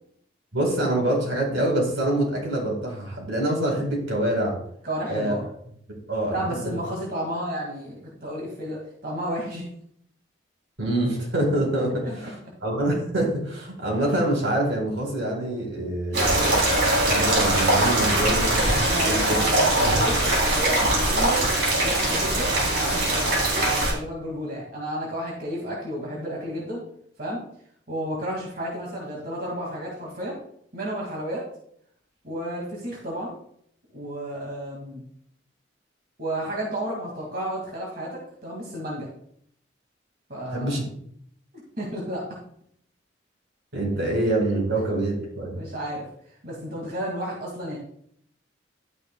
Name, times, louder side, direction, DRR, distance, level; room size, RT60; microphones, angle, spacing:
voice 1, 0.5-4.6 5.1-5.4 6.1-6.6 10.8-12.4 12.6-16.6 17.1-19.4 19.8-19.9 40.5-40.8 43.7-45.6, right 1 dB, 85° right, 0 dB, 4.2 m, -25 dB
voice 2, 4.8-5.5 6.3-9.7 12.2-12.3 16.1-16.2 18.8-21.5 21.8-26.8 27.2-27.4 27.9-30.4 30.7-31.5 32.2-33.3 33.9-35.0 36.2-39.1 40.3-40.8 41.8-42.4 45.6-46.1 46.4-47.8, right 1 dB, 50° right, -3 dB, 2.2 m, -32 dB
sound 1, 16.1-23.9, right 1 dB, 70° right, 3.5 m, -22 dB
12.0 x 9.4 x 2.3 m, 0.67 s
head